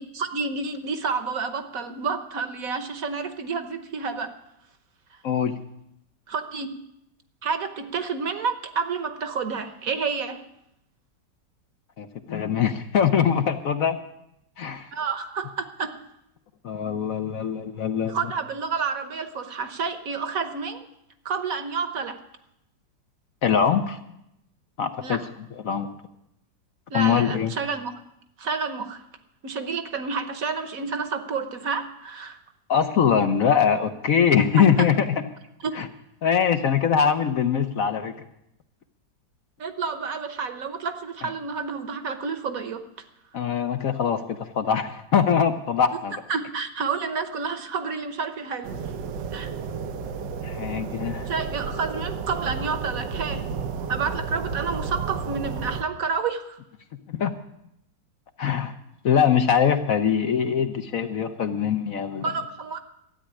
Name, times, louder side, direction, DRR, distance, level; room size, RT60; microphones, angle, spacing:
voice 1, 0.0-4.3 5.1-5.2 6.3-6.8 7.4-10.4 14.9-16.0 18.1-20.8 21.2-22.2 25.0-25.2 26.9-27.9 28.4-29.0 29.4-32.4 34.6-34.7 35.6-35.7 39.6-42.8 46.3-48.8 49.3-49.5 51.3-53.5 53.9-56.6 62.2-62.8, right 5 dB, 55° right, 9 dB, 1.3 m, -29 dB
voice 2, 12.0-14.0 14.6-14.9 16.6-18.2 23.4-24.0 24.8-25.2 25.6-25.9 26.9-27.5 32.7-35.2 35.7-35.9 36.2-38.1 43.3-46.1 50.4-51.3 57.1-57.3 58.4-58.7 59.0-62.2, left 7 dB, 60° left, 8 dB, 1.1 m, -22 dB
sound 1, 48.6-55.8, right 5 dB, 85° right, 1.6 m, -32 dB
13.0 x 8.9 x 10.0 m, 0.81 s
omnidirectional pair, 1.9 m